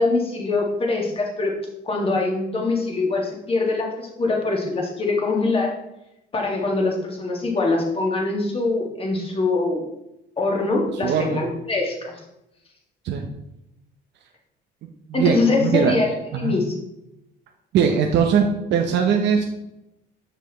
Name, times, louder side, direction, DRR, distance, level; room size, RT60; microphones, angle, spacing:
voice 1, 0.0-1.5 1.8-5.7 6.3-9.8 10.4-12.2 15.1-16.8, left 3 dB, 30° left, 0 dB, 1.9 m, -23 dB
voice 2, 11.0-11.4 13.0-13.3 15.1-15.9 16.4-16.6 17.7-19.4, right 7 dB, 70° right, 2 dB, 0.8 m, -20 dB
6.9 x 6.3 x 3.1 m, 0.88 s
cardioid pair, 95°, 19 cm